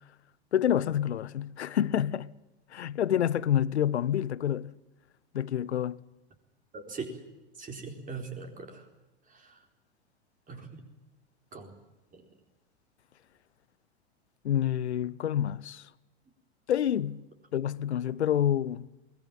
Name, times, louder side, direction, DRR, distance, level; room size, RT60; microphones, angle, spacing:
voice 1, 0.5-2.3 2.7-4.7 5.3-6.0 14.4-15.9 16.7-17.3 17.5-18.9, left 10 dB, 80° left, 0.8 m, -28 dB
voice 2, 6.7-7.2 7.6-8.8 10.5-10.8 11.5-11.7, right 4 dB, 25° right, 4.2 m, -40 dB
22.5 x 18.5 x 9.0 m
figure-of-eight pair, 90°, 33 cm